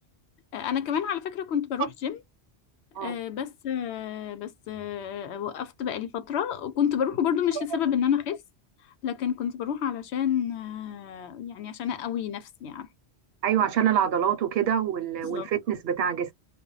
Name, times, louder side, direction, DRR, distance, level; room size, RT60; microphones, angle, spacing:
voice 1, 0.5-2.2 3.0-8.4 9.0-12.9 15.2-15.5, left 9 dB, 85° left, 0.9 m, -29 dB
voice 2, 13.4-16.3, right 9 dB, 70° right, 0.8 m, -25 dB
2.2 x 2.0 x 3.8 m
omnidirectional pair, 1.1 m